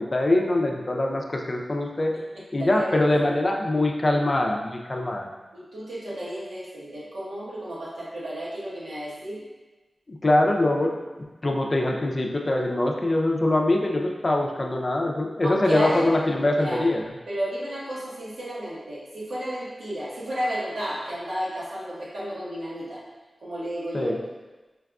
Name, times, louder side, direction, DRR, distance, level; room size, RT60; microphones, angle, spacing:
voice 1, 0.0-2.1 2.5-5.3 10.1-11.0 11.4-17.0 23.9-24.2, left 1 dB, 45° left, 1 dB, 0.4 m, -23 dB
voice 2, 2.3-3.3 5.5-9.4 15.4-16.1 16.6-16.9 17.3-23.0 23.4-24.1, equal, 90° right, -9 dB, 1.1 m, -32 dB
4.5 x 2.4 x 2.3 m, 1.2 s
cardioid pair, 45°, 0 cm